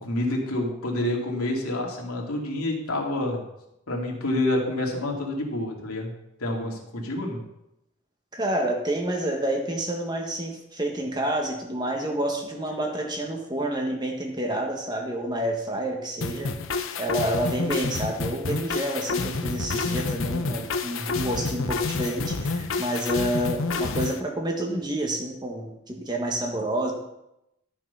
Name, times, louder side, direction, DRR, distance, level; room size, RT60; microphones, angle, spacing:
voice 1, 0.0-3.4 3.9-6.1 6.4-7.4 17.2-17.4, left 1 dB, 90° left, 0 dB, 2.5 m, -28 dB
voice 2, 8.3-16.5 17.0-26.9, right 1 dB, 20° right, 2 dB, 1.6 m, -29 dB
sound 1, 16.2-24.2, left 3 dB, 65° left, 0.8 m, -29 dB
12.5 x 6.1 x 5.7 m, 0.85 s
head